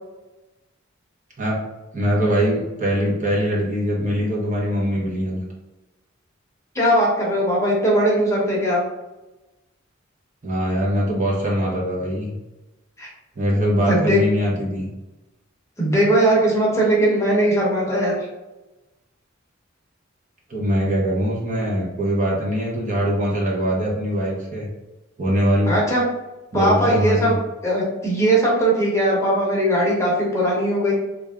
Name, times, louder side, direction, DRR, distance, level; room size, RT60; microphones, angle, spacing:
voice 1, 1.9-5.4 10.4-12.3 13.4-14.9 20.5-24.7 25.2-25.8 26.5-27.3, equal, 40° right, -3 dB, 0.9 m, -22 dB
voice 2, 6.7-8.8 13.0-13.1 13.9-14.2 15.8-18.1 25.7-26.0 26.5-27.3 27.6-30.9, right 1 dB, 15° left, -4 dB, 0.9 m, -19 dB
3.2 x 2.5 x 3.6 m, 1.0 s
head